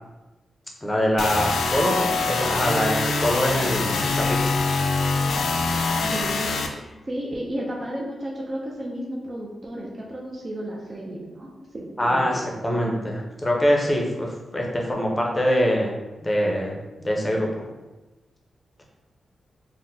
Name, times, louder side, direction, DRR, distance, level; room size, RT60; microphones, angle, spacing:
voice 1, 0.8-4.5 12.0-15.9 16.2-16.7 17.0-17.7, equal, 15° left, -1 dB, 0.6 m, -24 dB
sound 1, 1.2-6.7, left 3 dB, 85° left, 0.3 m, -24 dB
voice 2, 6.1-6.7 7.1-13.0, right 1 dB, 30° right, -2 dB, 0.4 m, -33 dB
4.0 x 2.1 x 2.6 m, 1.1 s
cardioid pair, 100°, 0 cm